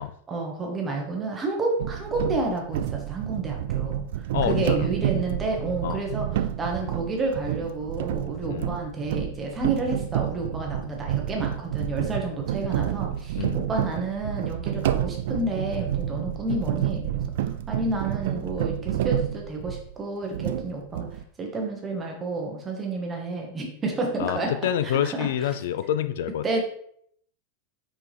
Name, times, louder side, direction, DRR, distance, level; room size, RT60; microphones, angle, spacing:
voice 1, 0.3-21.1 21.4-24.5 25.0-25.5 26.4-26.6, right 2 dB, 15° right, 0 dB, 1.1 m, -30 dB
sound 1, 1.8-20.0 20.3-21.2, right 11 dB, 60° right, 0.3 m, -29 dB
voice 2, 4.3-4.9 5.8-6.0 8.5-8.7 13.4-13.6 24.2-26.5, left 10 dB, 65° left, 11 dB, 0.4 m, -27 dB
6.1 x 4.7 x 3.4 m, 0.66 s
supercardioid pair, 175°, 0 cm